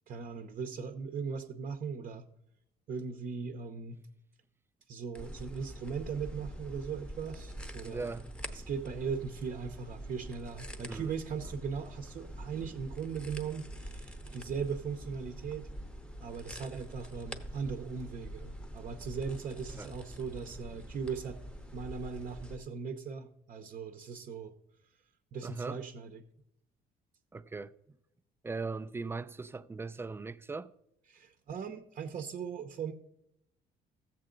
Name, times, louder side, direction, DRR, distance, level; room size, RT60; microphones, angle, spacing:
voice 1, 0.1-2.3 2.9-4.0 4.9-8.1 8.5-15.7 16.2-21.4 21.7-24.5 25.3-26.2 31.1-32.9, right 6 dB, 50° right, 0.8 m, -39 dB
sound 1, 5.1-22.6, equal, 5° left, 0.8 m, -45 dB
voice 2, 7.9-8.3 10.8-11.1 19.7-19.9 25.4-25.8 27.3-27.7 28.4-30.7, right 4 dB, 15° right, 0.4 m, -39 dB
14.5 x 7.5 x 3.8 m
cardioid pair, 110°, 17 cm